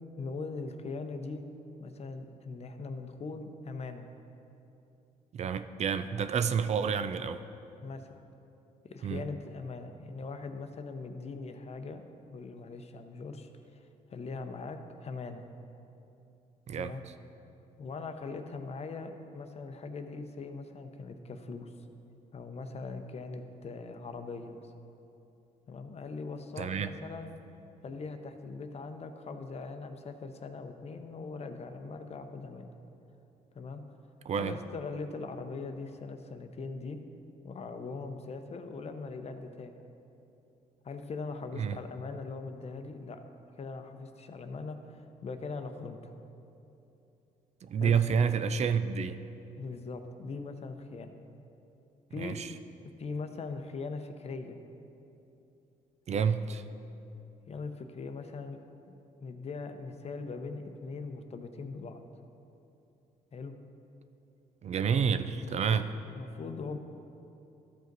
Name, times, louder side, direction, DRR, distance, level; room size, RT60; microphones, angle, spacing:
voice 1, 0.2-1.5 1.8-4.1 6.8-6.9 7.8-8.2 8.8-12.0 12.3-13.5 14.1-15.4 16.7-17.0 17.8-21.7 22.3-24.7 25.7-27.3 27.8-32.7 33.5-33.8 34.3-37.0 37.4-39.7 40.8-43.2 43.6-46.1 47.8-48.0 49.6-51.1 52.1-52.4 53.0-54.6 56.1-56.3 57.5-58.6 58.9-59.0 59.2-62.0 63.3-63.5 65.4-65.9 66.2-66.8, left 4 dB, 45° left, 7 dB, 0.7 m, -41 dB
voice 2, 5.3-7.4 9.0-9.2 16.7-16.9 26.6-26.9 34.3-34.5 41.6-41.8 47.6-49.2 52.2-52.5 56.1-56.6 64.6-65.9, right 6 dB, 50° right, 11 dB, 0.4 m, -29 dB
12.5 x 5.1 x 4.0 m, 2.9 s
cardioid pair, 75°, 15 cm